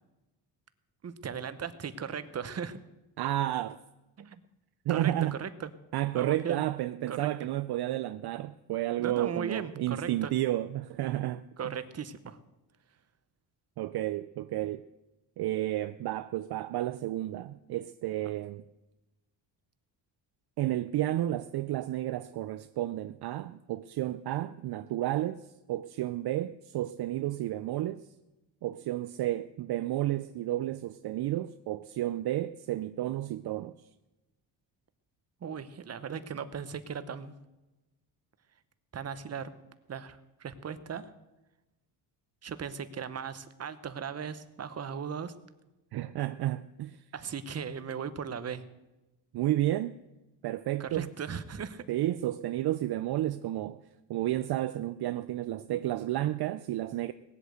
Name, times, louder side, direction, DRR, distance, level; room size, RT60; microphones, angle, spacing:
voice 1, 1.0-2.8 4.2-4.4 4.9-5.7 6.1-6.6 7.1-7.5 9.0-10.3 11.6-12.4 35.4-37.3 38.9-39.5 39.9-41.1 42.4-45.3 47.1-48.6 50.8-51.9, right 7 dB, 35° right, 1.0 m, -37 dB
voice 2, 3.2-3.8 4.9-5.4 5.9-11.4 13.8-14.8 15.4-18.6 20.6-25.4 25.7-28.0 28.6-33.7 45.9-47.0 49.3-50.0 50.4-51.1 51.9-53.8 54.1-57.1, right 14 dB, 60° right, 0.6 m, -31 dB
18.5 x 8.3 x 7.9 m
cardioid pair, 125°, 44 cm